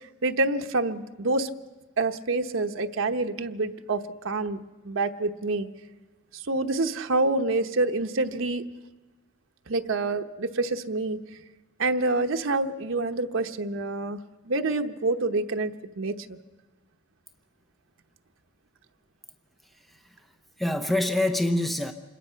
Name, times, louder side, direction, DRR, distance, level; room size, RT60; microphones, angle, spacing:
voice 1, 0.2-1.5 2.0-4.6 4.8-5.7 6.3-8.6 9.7-11.2 11.8-14.2 14.4-16.4, right 2 dB, 80° right, 5 dB, 0.9 m, -27 dB
voice 2, 19.8-20.2 20.6-21.9, left 1 dB, ahead, 6 dB, 0.8 m, -26 dB
26.5 x 21.5 x 5.7 m, 1.2 s
head